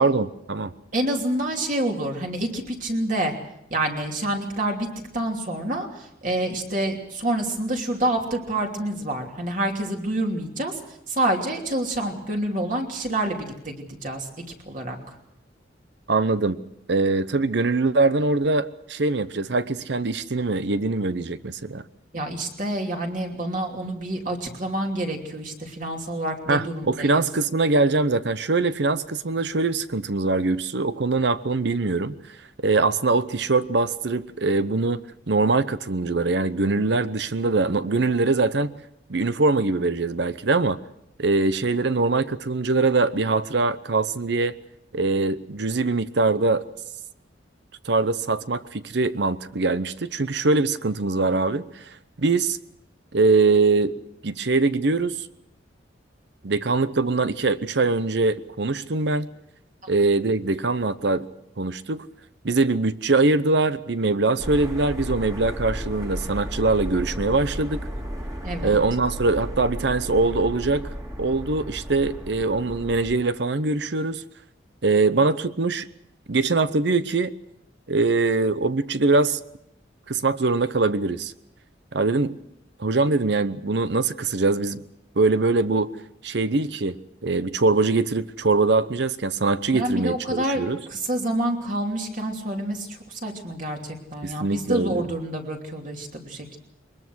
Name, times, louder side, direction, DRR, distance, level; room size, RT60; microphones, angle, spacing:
voice 1, 0.0-0.7 16.1-16.6 16.9-21.8 26.5-32.1 32.6-38.7 39.1-40.8 41.2-44.6 44.9-46.6 47.8-51.8 52.2-52.6 53.1-54.0 54.2-55.3 56.4-59.3 59.9-61.3 61.6-62.0 62.4-67.9 68.6-70.9 71.2-74.2 74.8-75.8 76.3-77.3 77.9-79.4 80.1-81.3 81.9-82.3 82.8-84.8 85.2-85.9 86.2-90.8 94.2-95.1, right 3 dB, 65° right, 14 dB, 0.8 m, -22 dB
voice 2, 0.9-3.3 3.7-4.9 5.1-10.8 11.1-15.1 22.1-27.2 68.4-68.8 89.7-90.6 90.9-96.6, right 1 dB, 45° right, 2 dB, 3.0 m, -27 dB
sound 1, 64.4-73.2, equal, 20° right, 2.4 m, -34 dB
22.0 x 20.5 x 6.3 m, 0.82 s
head